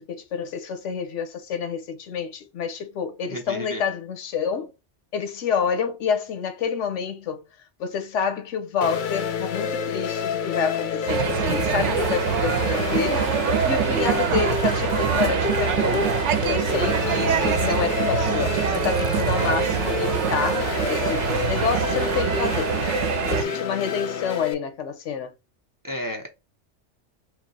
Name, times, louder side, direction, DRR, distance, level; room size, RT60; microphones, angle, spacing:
voice 1, 0.0-4.7 5.1-7.4 7.8-13.3 13.7-22.7 23.3-25.3, left 6 dB, 85° left, 1.1 m, -28 dB
voice 2, 3.3-3.8 13.7-14.0 23.3-23.6 25.8-26.3, equal, 20° right, 0.7 m, -34 dB
sound 1, 8.8-24.5, left 7 dB, 55° left, 0.6 m, -29 dB
sound 2, 11.1-23.4, right 8 dB, 80° right, 0.9 m, -24 dB
3.2 x 3.0 x 3.9 m
omnidirectional pair, 1.2 m